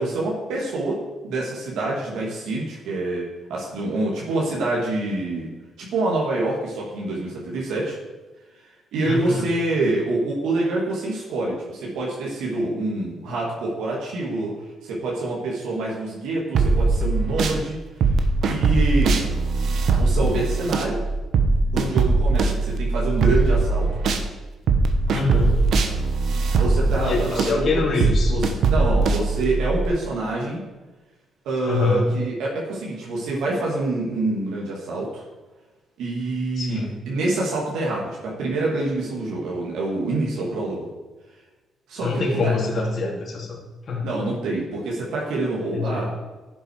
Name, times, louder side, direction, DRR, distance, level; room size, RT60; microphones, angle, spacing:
voice 1, 0.0-5.5 5.8-8.0 8.9-14.5 14.8-17.8 18.5-19.2 20.0-21.0 21.7-23.9 26.6-27.9 28.3-30.6 31.4-35.2 36.0-40.9 41.9-42.5 44.0-46.1, right 2 dB, 85° right, -4 dB, 2.4 m, -26 dB
voice 2, 9.0-9.4 25.1-25.6 27.0-28.3 31.6-32.1 36.6-36.9 42.0-43.6 43.9-44.1 45.7-46.1, left 3 dB, 50° left, -2 dB, 3.0 m, -24 dB
squashed drums mgreel, 16.5-17.6 18.0-24.3 24.7-29.9, right 3 dB, 65° right, 1.1 m, -21 dB
11.5 x 6.8 x 4.8 m, 1.2 s
cardioid pair, 90°, 0 cm